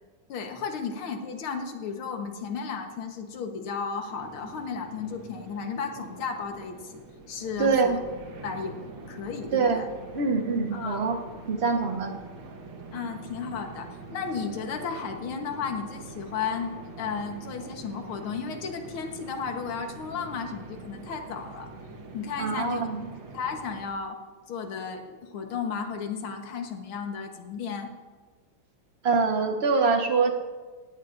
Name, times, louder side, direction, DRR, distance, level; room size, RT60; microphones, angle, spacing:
voice 1, 0.3-8.0 8.4-8.8 9.1-9.9 10.7-11.0 12.9-21.7 22.1-22.8 23.3-24.2 24.5-27.9, left 5 dB, 75° left, 4 dB, 2.1 m, -34 dB
sound 1, 4.1-23.9, right 3 dB, 60° right, 2.0 m, -44 dB
voice 2, 7.6-8.0 9.5-11.2 11.5-12.1 22.4-23.1 29.0-30.3, right 4 dB, 35° right, 4 dB, 1.2 m, -24 dB
17.5 x 17.0 x 2.6 m, 1.4 s
omnidirectional pair, 2.3 m